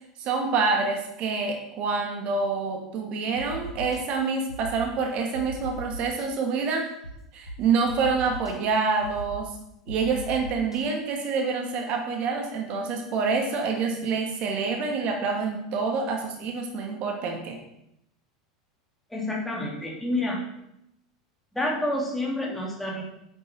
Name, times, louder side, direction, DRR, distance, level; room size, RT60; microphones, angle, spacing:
voice 1, 0.2-6.9 7.3-9.5 9.9-17.6, right 4 dB, 45° right, 2 dB, 2.6 m, -27 dB
sound 1, 3.4-4.0 4.5-4.9 5.3-6.3 7.0-7.1 7.5-7.6 7.9-8.5 9.0-9.4 9.9-10.8, right 1 dB, 90° left, 1.5 m, -38 dB
voice 2, 19.1-20.4 21.5-23.0, left 1 dB, 5° left, -2 dB, 3.4 m, -28 dB
9.9 x 7.9 x 4.9 m, 0.78 s
figure-of-eight pair, 85°, 3 cm